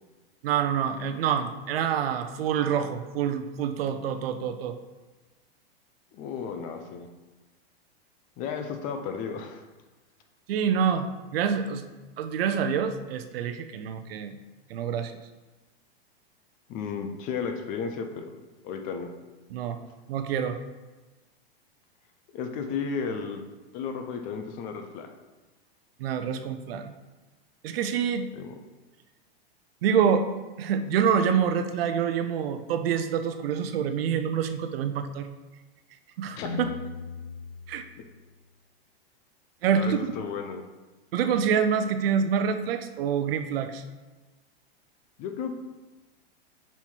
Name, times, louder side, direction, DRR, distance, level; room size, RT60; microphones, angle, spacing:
voice 1, 0.4-4.8 10.5-11.9 12.2-14.4 14.7-15.1 19.5-19.8 20.1-20.6 26.0-26.9 27.6-28.3 29.8-30.3 30.6-35.3 36.2-36.7 37.7-37.8 39.6-40.1 41.1-43.8, right 7 dB, 70° right, 9 dB, 0.6 m, -26 dB
voice 2, 6.1-7.1 8.4-9.6 16.7-18.2 18.6-19.1 22.3-23.4 23.7-25.1 28.3-28.5 36.4-36.5 39.7-40.6 45.2-45.6, left 6 dB, 25° left, 6 dB, 0.5 m, -33 dB
Guitar, 36.4-38.4, left 7 dB, 75° left, 0.8 m, -39 dB
5.7 x 4.2 x 4.5 m, 1.2 s
supercardioid pair, 150°, 31 cm